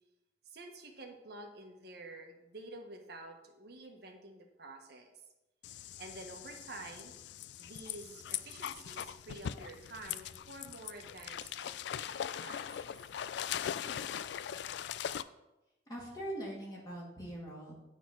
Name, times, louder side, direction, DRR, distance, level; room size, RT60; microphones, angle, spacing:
voice 1, 0.4-5.1 6.0-7.1 7.6-12.6 13.5-13.6, right 2 dB, 60° right, 2 dB, 1.3 m, -49 dB
sound 1, 5.6-15.2, left 9 dB, 70° left, 0.3 m, -41 dB
voice 2, 15.9-17.7, right 1 dB, 20° left, -4 dB, 2.0 m, -42 dB
9.5 x 4.0 x 6.2 m, 0.97 s
head